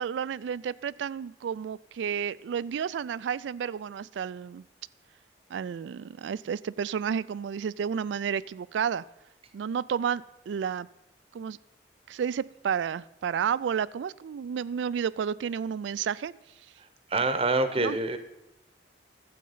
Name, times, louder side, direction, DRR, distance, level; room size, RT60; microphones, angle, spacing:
voice 1, 0.0-4.6 5.5-9.0 9.5-10.9 11.3-11.6 12.1-16.3 17.8-18.0, right 7 dB, 85° right, 19 dB, 0.3 m, -31 dB
voice 2, 16.8-18.2, right 2 dB, 30° right, 10 dB, 0.8 m, -27 dB
12.5 x 7.8 x 5.5 m, 0.88 s
head